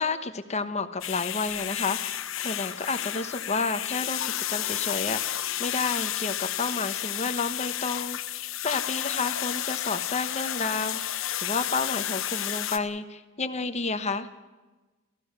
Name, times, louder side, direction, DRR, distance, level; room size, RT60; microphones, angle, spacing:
voice 1, 0.0-8.2 8.6-14.3, left 4 dB, 35° left, 9 dB, 1.1 m, -31 dB
sound 1, 1.0-12.8, left 11 dB, 70° left, 1.1 m, -31 dB
30.0 x 14.5 x 6.7 m, 1.2 s
head